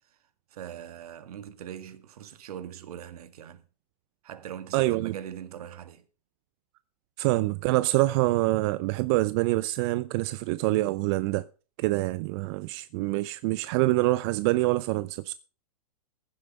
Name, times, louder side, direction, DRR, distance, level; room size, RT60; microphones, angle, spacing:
voice 1, 0.5-3.6 4.2-6.0, right 10 dB, 70° right, 1.8 m, -41 dB
voice 2, 4.7-5.2 7.2-11.5 11.8-15.3, right 19 dB, 45° right, 0.6 m, -25 dB
15.5 x 7.7 x 5.4 m
hypercardioid pair, 125°, 20 cm